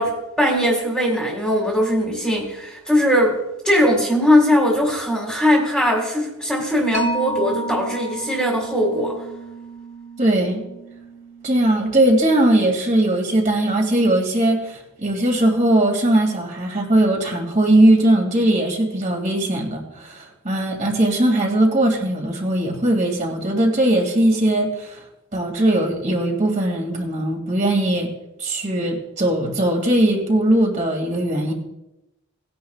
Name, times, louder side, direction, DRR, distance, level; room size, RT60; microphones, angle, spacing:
voice 1, 0.0-3.4 3.6-9.2, equal, ahead, -2 dB, 2.1 m, -20 dB
Mallet percussion, 6.9-14.0, right 1 dB, 30° left, 1.6 m, -34 dB
voice 2, 10.2-10.6 11.4-25.0 25.3-28.1 28.4-31.5, right 1 dB, 35° right, 1 dB, 2.5 m, -19 dB
18.5 x 10.5 x 2.4 m, 0.92 s
head